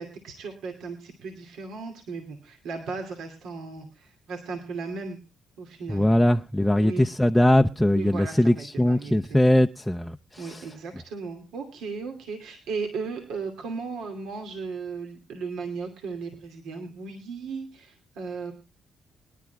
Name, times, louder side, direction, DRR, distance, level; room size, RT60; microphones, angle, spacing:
voice 1, 0.0-5.2 5.6-6.1 6.8-7.0 7.9-9.4 10.4-18.5, right 4 dB, 80° right, 2.5 m, -36 dB
voice 2, 5.9-10.7, left 1 dB, 5° left, 0.6 m, -21 dB
23.5 x 11.5 x 2.3 m
cardioid pair, 90°, 0 cm